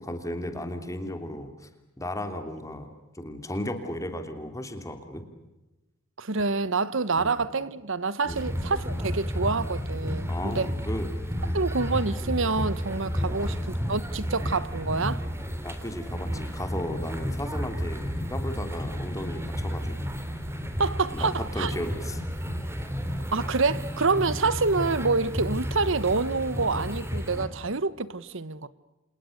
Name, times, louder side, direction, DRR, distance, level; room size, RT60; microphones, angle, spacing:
voice 1, 0.0-1.7 2.0-2.9 3.1-5.2 7.2-7.4 8.2-8.5 10.3-11.1 11.4-11.6 13.2-13.5 15.6-20.1 21.1-22.2 22.8-22.9, left 1 dB, 15° left, 3.0 m, -35 dB
voice 2, 6.2-10.7 11.5-15.3 20.8-21.7 23.3-28.7, right 4 dB, 65° right, 1.1 m, -27 dB
sound 1, 8.3-27.5, equal, 15° right, 3.3 m, -32 dB
30.0 x 28.0 x 6.6 m
head